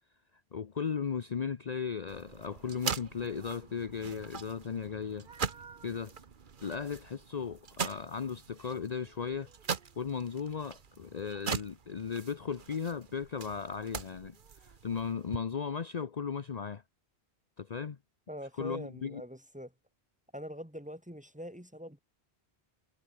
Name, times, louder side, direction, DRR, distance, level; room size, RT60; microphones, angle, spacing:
voice 1, 0.5-5.3 5.8-6.1 6.6-9.5 10.0-16.8 17.6-18.0 18.6-19.2, left 6 dB, 40° left, 0.8 m, -36 dB
sound 1, 2.1-15.4, right 6 dB, 50° right, 1.3 m, -41 dB
voice 2, 18.3-19.7 20.3-22.0, equal, 5° right, 2.2 m, -43 dB
omnidirectional pair, 1.1 m